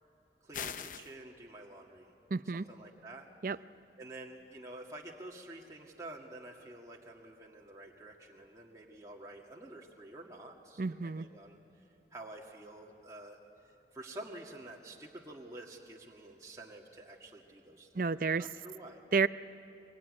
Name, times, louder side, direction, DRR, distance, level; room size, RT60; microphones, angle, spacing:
voice 1, 0.4-2.1 2.5-3.3 4.0-11.6 12.1-13.4 13.9-17.9 18.4-19.0, right 2 dB, 20° right, -2 dB, 2.0 m, -49 dB
sound 1, 0.5-1.1, left 7 dB, 50° left, 0.6 m, -40 dB
voice 2, 2.3-2.7 3.4-3.6 10.8-11.3 17.9-18.5 19.1-19.3, right 4 dB, 50° right, 15 dB, 0.5 m, -30 dB
24.0 x 23.0 x 9.7 m, 2.7 s
head